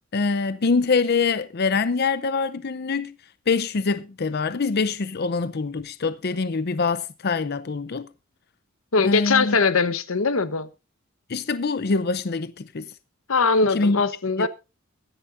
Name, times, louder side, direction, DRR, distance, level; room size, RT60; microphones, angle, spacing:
voice 1, 0.1-3.1 3.5-8.1 9.0-9.6 11.3-12.9 13.7-14.0 14.4-14.5, left 4 dB, 50° left, 0.6 m, -24 dB
voice 2, 8.9-10.7 13.3-14.5, left 4 dB, 90° left, 1.1 m, -21 dB
22.5 x 10.0 x 2.6 m
head